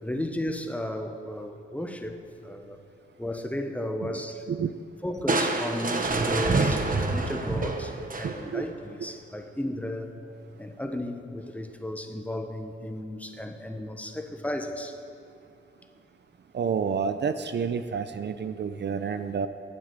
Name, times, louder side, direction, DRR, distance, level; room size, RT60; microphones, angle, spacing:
voice 1, 0.0-2.8 3.2-4.5 5.0-10.1 10.6-15.0, left 1 dB, 5° left, 5 dB, 1.1 m, -34 dB
Crushing, 5.3-8.7, right 3 dB, 40° right, 1.2 m, -27 dB
voice 2, 8.2-8.6 16.5-19.5, right 6 dB, 55° right, 10 dB, 0.6 m, -29 dB
11.5 x 9.7 x 8.2 m, 2.4 s
wide cardioid pair, 105°, 21 cm